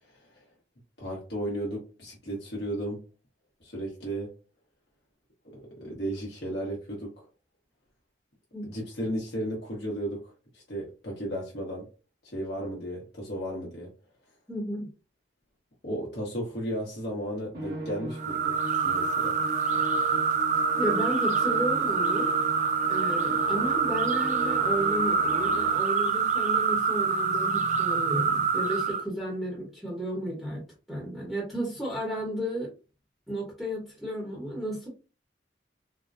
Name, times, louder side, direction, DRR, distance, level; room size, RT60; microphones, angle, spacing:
voice 1, 1.0-3.0 3.6-4.3 5.5-7.1 8.6-11.9 12.2-13.9 15.8-18.5 18.8-19.4, right 1 dB, 65° left, -2 dB, 1.0 m, -34 dB
voice 2, 14.5-14.9 20.8-30.6 30.9-32.7 33.3-34.9, equal, ahead, -5 dB, 1.0 m, -33 dB
Musical instrument, 17.5-26.0, right 1 dB, 60° right, 1.2 m, -38 dB
sound 1, 18.2-29.0, right 5 dB, 40° right, 0.3 m, -26 dB
3.8 x 2.1 x 2.5 m, 0.32 s
head